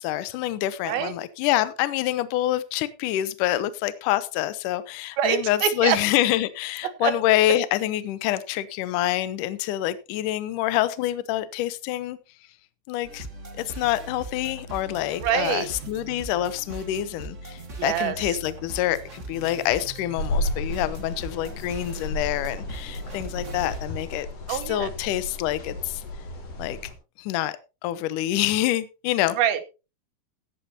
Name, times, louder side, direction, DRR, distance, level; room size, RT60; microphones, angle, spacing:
voice 1, 0.0-12.2 12.9-13.3 13.6-26.0 26.6-26.8 27.2-27.6 27.8-29.4, left 14 dB, 75° left, 2.1 m, -26 dB
voice 2, 5.2-6.0 7.0-7.1 15.2-15.7 17.8-18.4 24.5-24.9 29.4-29.6, right 10 dB, 80° right, 2.8 m, -25 dB
sound 1, 13.0-23.8, right 2 dB, 35° right, 1.2 m, -40 dB
sound 2, 20.1-26.9, left 1 dB, 55° left, 4.0 m, -33 dB
16.0 x 10.5 x 2.8 m
omnidirectional pair, 4.4 m